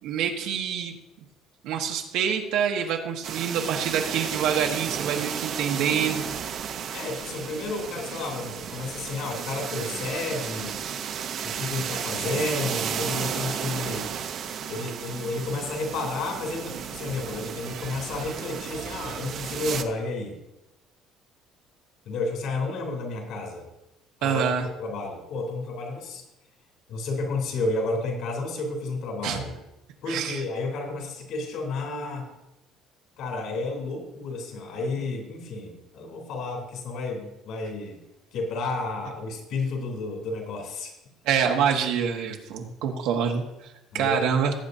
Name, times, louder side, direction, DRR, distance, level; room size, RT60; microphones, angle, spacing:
voice 1, 0.0-0.9 1.6-6.2 24.2-24.7 29.2-29.4 30.1-30.4 41.2-44.5, right 7 dB, 80° right, 2 dB, 1.4 m, -26 dB
sound 1, 3.2-19.8, right 8 dB, 45° right, 0.7 m, -33 dB
voice 2, 6.8-10.7 11.4-14.1 14.7-20.4 22.1-23.7 24.2-24.4 24.8-26.2 26.9-29.5 30.0-32.3 33.2-38.0 38.3-40.9 43.9-44.2, left 3 dB, 60° left, 1 dB, 3.2 m, -31 dB
18.0 x 8.7 x 2.7 m, 0.91 s
cardioid pair, 165°, 0 cm